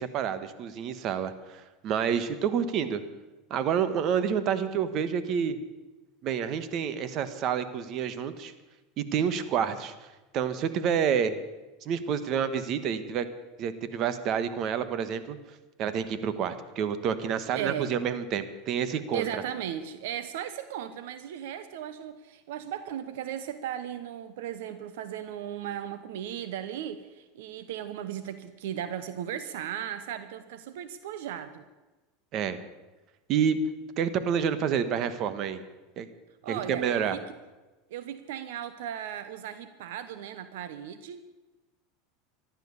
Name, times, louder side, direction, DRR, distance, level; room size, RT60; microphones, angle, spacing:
voice 1, 0.0-3.0 3.5-5.6 6.2-8.5 9.0-9.9 10.3-11.4 11.8-13.2 13.6-15.4 15.8-19.2 32.3-32.6 33.3-33.6 34.0-35.6 36.0-36.1 36.5-37.2, right 7 dB, 45° right, 12 dB, 1.3 m, -28 dB
voice 2, 17.5-17.9 19.1-31.7 36.4-37.2 37.9-41.2, right 10 dB, 80° right, 12 dB, 0.9 m, -36 dB
14.5 x 12.0 x 7.0 m, 1.2 s
supercardioid pair, 125°, 0 cm